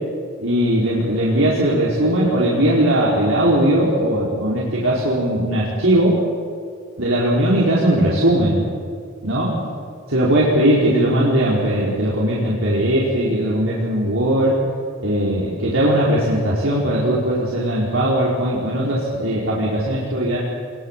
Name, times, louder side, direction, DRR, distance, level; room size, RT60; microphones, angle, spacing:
voice 1, 0.4-6.2 7.0-8.6 9.2-9.5 10.1-14.5 15.0-20.4, right 1 dB, 75° right, -6 dB, 4.6 m, -19 dB
25.0 x 21.5 x 7.5 m, 2.1 s
head